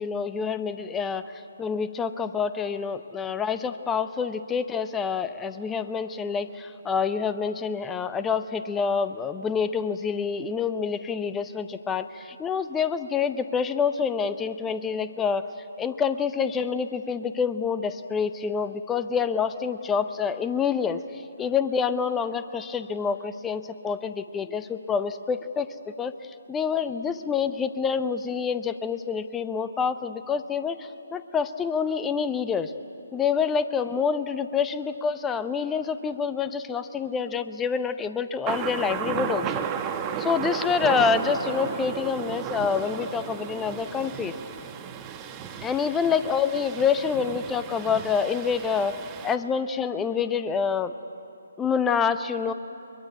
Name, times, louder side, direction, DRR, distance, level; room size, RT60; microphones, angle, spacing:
voice 1, 0.0-1.3 1.6-15.5 15.8-25.7 26.0-26.1 26.5-32.7 33.1-39.6 40.2-44.3 45.6-49.0 49.2-50.9 51.6-52.5, left 6 dB, 10° left, 11 dB, 0.7 m, -27 dB
Thunder, 38.5-49.4, right 8 dB, 20° right, 1.2 m, -34 dB
22.5 x 22.5 x 9.4 m, 2.8 s
figure-of-eight pair, 140°, 0 cm